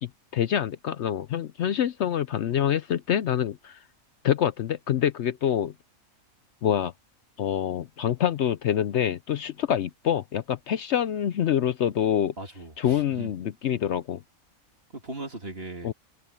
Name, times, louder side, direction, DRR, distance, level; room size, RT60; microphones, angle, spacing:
voice 1, 0.0-3.8 4.2-5.7 6.6-6.9 7.4-12.3 12.8-14.2 15.8-15.9, left 10 dB, 65° left, 0.8 m, -26 dB
voice 2, 12.4-13.3 14.9-15.9, right 2 dB, 45° right, 2.5 m, -38 dB
omnidirectional pair, 1.5 m